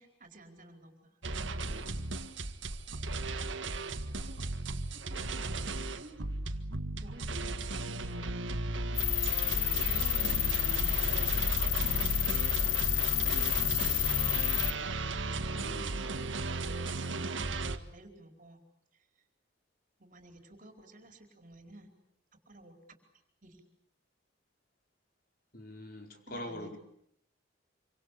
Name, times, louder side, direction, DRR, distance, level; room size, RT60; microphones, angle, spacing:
voice 1, 0.0-1.9 4.3-4.4 4.9-6.3 7.0-9.1 9.8-11.4 11.8-14.6 16.0-18.6 18.9-19.1 20.0-21.9 22.5-22.7 23.4-23.6 26.3-26.8, right 1 dB, 45° right, 4 dB, 4.8 m, -53 dB
sound 1, 1.2-17.8, right 3 dB, 85° right, 1.8 m, -36 dB
sound 2, 9.0-14.7, left 10 dB, 85° left, 1.1 m, -29 dB
voice 2, 15.5-16.0 25.5-26.8, left 1 dB, 50° left, 3 dB, 4.7 m, -43 dB
27.0 x 25.5 x 8.5 m, 0.72 s
head